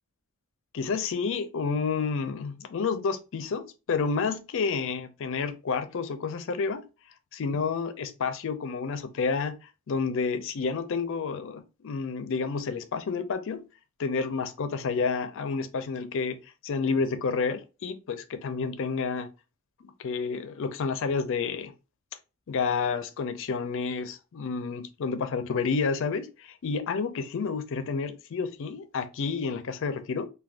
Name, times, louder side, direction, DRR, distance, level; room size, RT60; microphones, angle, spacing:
voice 1, 0.7-6.8 7.3-13.6 14.0-16.4 16.6-19.3 19.8-21.7 22.5-30.3, left 5 dB, 60° left, 0.4 m, -30 dB
2.4 x 2.2 x 3.4 m
head